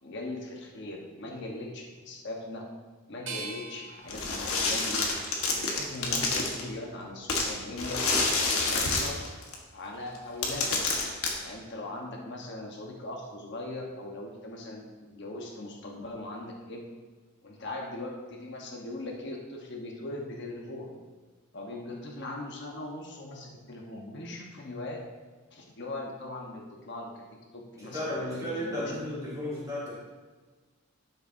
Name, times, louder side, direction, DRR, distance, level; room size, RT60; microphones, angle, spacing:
voice 1, 0.0-2.7 3.1-5.1 5.5-9.2 9.7-10.9 11.4-16.8 17.4-20.9 21.5-25.0 25.5-27.3 27.5-28.8, left 2 dB, 50° left, 0 dB, 1.1 m, -40 dB
sound 1, 3.3-6.2 6.7-7.5, right 4 dB, 60° right, 1.2 m, -45 dB
sound 2, 4.1-6.7 7.3-9.5 10.2-10.3 10.4-11.3, left 3 dB, 75° left, 1.3 m, -28 dB
voice 2, 27.8-30.0, left 1 dB, 15° right, -9 dB, 2.5 m, -34 dB
12.0 x 6.7 x 2.7 m, 1.3 s
head